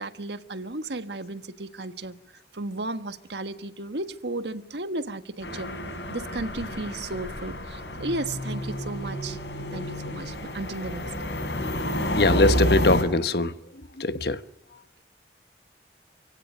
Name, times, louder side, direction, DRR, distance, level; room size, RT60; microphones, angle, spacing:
voice 1, 0.0-2.2 2.5-5.7 6.1-9.4 9.7-11.1, right 2 dB, 80° right, 1.5 m, -34 dB
sound 1, 5.4-13.0, equal, 90° left, 7.0 m, -29 dB
voice 2, 12.2-13.5 14.0-14.4, left 2 dB, 65° left, 1.2 m, -21 dB
29.5 x 16.5 x 9.1 m
head